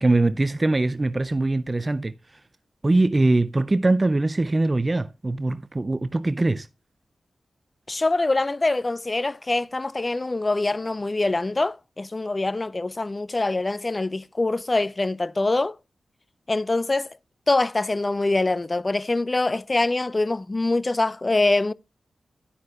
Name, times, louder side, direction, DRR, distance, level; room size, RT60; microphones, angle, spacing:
voice 1, 0.0-2.1 2.8-6.7, right 2 dB, 30° right, 0.4 m, -22 dB
voice 2, 7.9-15.8 16.5-17.1 17.5-21.7, left 2 dB, 35° left, 0.4 m, -24 dB
9.8 x 9.6 x 2.3 m
cardioid pair, 55°, 0 cm